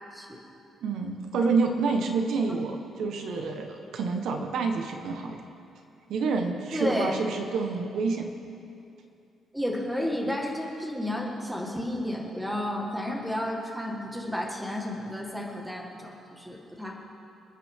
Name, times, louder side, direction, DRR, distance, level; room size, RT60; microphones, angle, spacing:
voice 1, 0.8-5.4 6.1-8.4, right 4 dB, 65° right, 4 dB, 1.1 m, -28 dB
voice 2, 6.7-7.2 9.5-16.9, left 1 dB, 5° right, -1 dB, 1.6 m, -32 dB
27.5 x 9.2 x 3.7 m, 2.6 s
cardioid pair, 175°, 0 cm